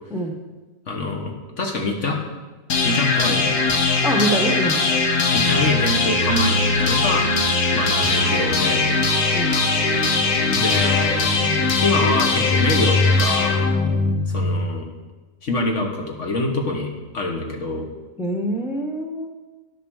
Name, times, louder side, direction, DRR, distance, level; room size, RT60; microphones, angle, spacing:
voice 1, 0.9-2.2 2.8-3.5 5.3-7.3 7.7-8.8 10.5-11.2 11.8-13.6 14.3-14.8 15.4-17.9, left 2 dB, 55° left, 2 dB, 1.6 m, -25 dB
sound 1, 2.7-14.6, left 3 dB, 80° left, 1.7 m, -20 dB
voice 2, 4.0-4.8 9.3-9.6 18.2-19.3, right 1 dB, ahead, 3 dB, 0.8 m, -24 dB
10.5 x 6.9 x 6.3 m, 1.2 s
omnidirectional pair, 1.5 m